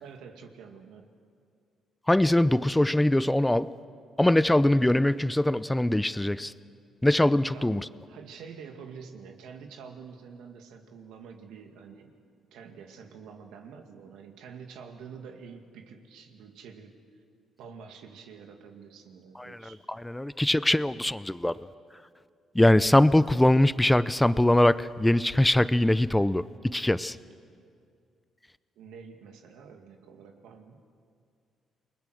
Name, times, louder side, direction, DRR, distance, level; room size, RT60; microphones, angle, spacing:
voice 1, 0.0-1.1 7.5-12.2 12.5-17.0 17.6-19.8 28.8-30.8, right 6 dB, 90° right, 4 dB, 2.2 m, -47 dB
voice 2, 2.1-3.7 4.2-6.5 7.0-7.8 19.4-19.6 20.0-21.5 22.5-27.2, left 1 dB, 10° left, 16 dB, 0.6 m, -22 dB
29.0 x 21.0 x 6.5 m, 2.2 s
cardioid pair, 90°, 0 cm